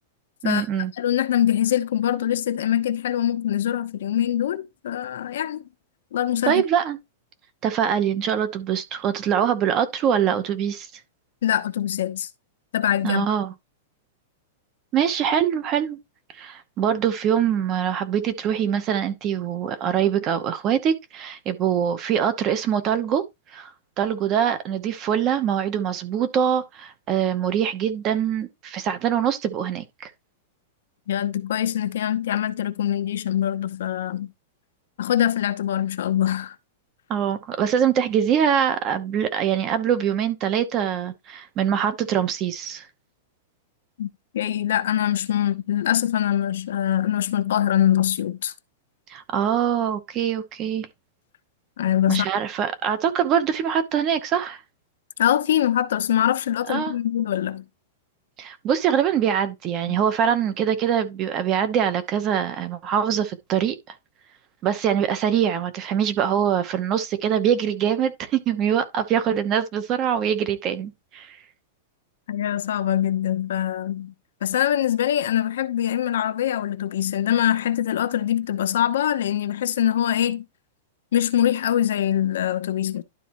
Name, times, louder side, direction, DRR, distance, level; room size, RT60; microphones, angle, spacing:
voice 1, 0.4-0.9 6.4-7.0 7.6-10.9 13.0-13.5 14.9-16.0 16.3-23.2 23.5-30.1 37.1-42.9 49.1-50.9 52.1-54.6 56.7-57.0 58.4-63.8 64.6-71.4, right 8 dB, 25° right, 0.9 m, -23 dB
voice 2, 1.0-5.6 6.1-6.6 11.4-12.3 12.7-13.3 31.1-34.3 35.0-36.6 44.0-48.5 51.8-52.3 55.2-57.6 72.3-74.1 74.4-80.5 81.1-83.0, left 11 dB, 75° left, 0.8 m, -23 dB
11.5 x 4.2 x 3.0 m
supercardioid pair, 165°, 0 cm